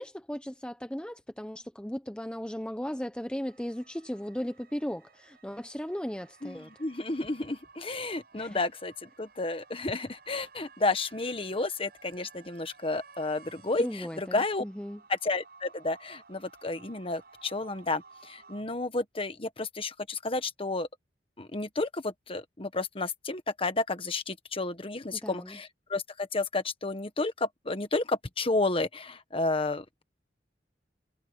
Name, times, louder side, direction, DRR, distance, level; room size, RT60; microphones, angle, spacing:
voice 1, 0.0-6.7 8.3-8.6 13.8-15.0 25.1-25.6, equal, 5° left, 0.9 m, -36 dB
sound 1, 3.4-18.6, right 4 dB, 60° right, 6.8 m, -56 dB
voice 2, 6.4-14.6 15.1-20.9 21.4-30.0, left 3 dB, 30° left, 1.5 m, -31 dB
head